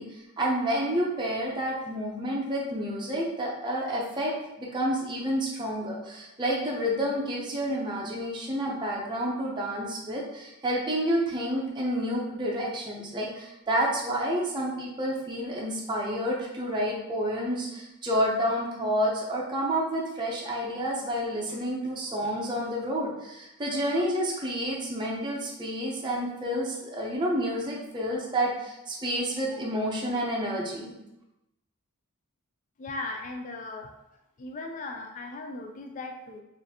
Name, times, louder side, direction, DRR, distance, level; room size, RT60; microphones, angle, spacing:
voice 1, 0.0-4.3 4.6-30.9, equal, 20° right, -3 dB, 0.6 m, -29 dB
voice 2, 32.8-33.9 34.4-36.4, left 2 dB, 35° left, 3 dB, 0.3 m, -37 dB
4.1 x 2.6 x 2.8 m, 0.91 s
head